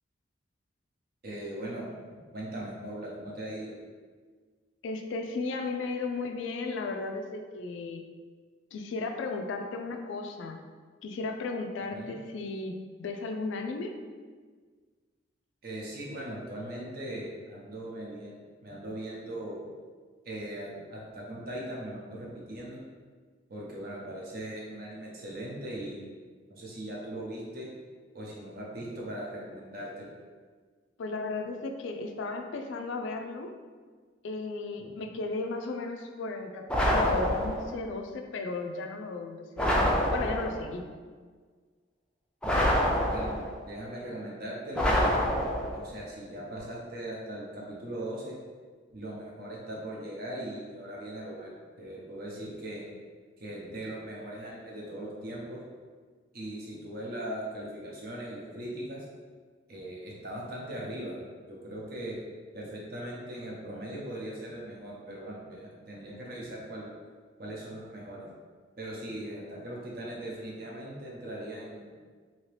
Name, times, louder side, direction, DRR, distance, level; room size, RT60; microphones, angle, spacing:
voice 1, 1.2-1.9 2.3-3.7 11.9-12.1 15.6-19.6 20.2-22.8 23.5-26.1 26.5-27.7 28.1-30.1 35.0-35.1 43.1-43.4 43.6-45.2 45.7-48.4 48.9-52.8 53.4-55.6 56.3-59.1 59.7-62.2 62.5-66.9 67.4-68.2 68.8-71.9, right 1 dB, 55° right, -3 dB, 0.7 m, -39 dB
voice 2, 4.8-8.0 8.7-10.6 11.0-13.9 31.0-33.5 34.2-40.8, left 3 dB, 80° left, 4 dB, 0.3 m, -35 dB
sound 1, 36.7-37.8 39.6-40.7 42.4-43.6 44.7-45.9, equal, 5° left, 0.4 m, -26 dB
2.9 x 2.8 x 3.2 m, 1.5 s
head